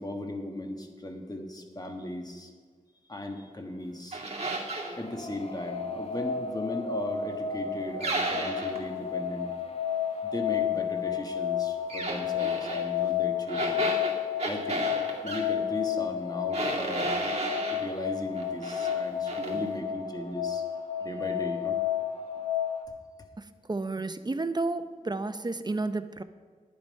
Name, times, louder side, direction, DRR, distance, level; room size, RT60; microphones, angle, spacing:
voice 1, 0.0-2.5 3.1-4.2 5.0-9.5 10.2-13.9 14.4-14.9 15.2-17.3 17.7-20.6 21.0-21.8, left 1 dB, 25° left, 3 dB, 1.5 m, -37 dB
sound 1, 4.1-5.0 8.0-8.8 11.9-12.8 13.5-15.5 16.5-17.9 18.3-19.0 19.3-19.5, right 2 dB, 50° right, 2.3 m, -33 dB
sound 2, 4.7-22.8, left 9 dB, 45° left, 1.0 m, -32 dB
voice 2, 23.4-26.2, right 3 dB, 30° right, 10 dB, 0.6 m, -32 dB
11.0 x 9.6 x 5.4 m, 1.5 s
wide cardioid pair, 80°, 14 cm